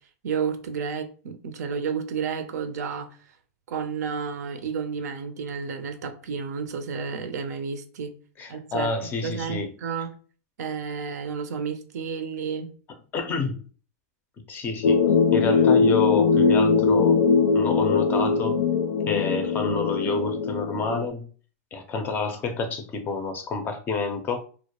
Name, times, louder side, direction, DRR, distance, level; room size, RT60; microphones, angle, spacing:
voice 1, 0.2-3.2 3.7-8.1 8.5-8.9 9.2-10.1 10.6-12.7, right 6 dB, 80° right, 0.5 m, -31 dB
voice 2, 8.4-9.7 13.1-13.6 14.5-17.2 17.5-18.6 19.1-21.3 21.7-24.4, left 4 dB, 20° left, 0.4 m, -29 dB
sound 1, 14.8-21.1, left 5 dB, 80° left, 0.4 m, -21 dB
2.2 x 2.0 x 2.8 m
supercardioid pair, 145°, 9 cm